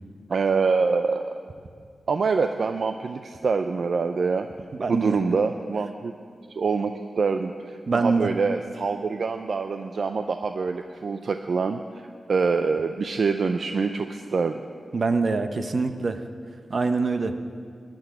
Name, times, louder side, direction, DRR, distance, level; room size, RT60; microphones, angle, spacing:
voice 1, 0.3-1.4 2.1-4.5 4.9-6.1 6.5-14.6, right 4 dB, 65° right, 7 dB, 0.5 m, -25 dB
voice 2, 4.8-5.2 7.9-8.3 14.9-16.2 16.7-17.3, right 4 dB, 50° right, 8 dB, 0.8 m, -24 dB
14.0 x 6.2 x 9.9 m, 2.2 s
wide cardioid pair, 85°, 0 cm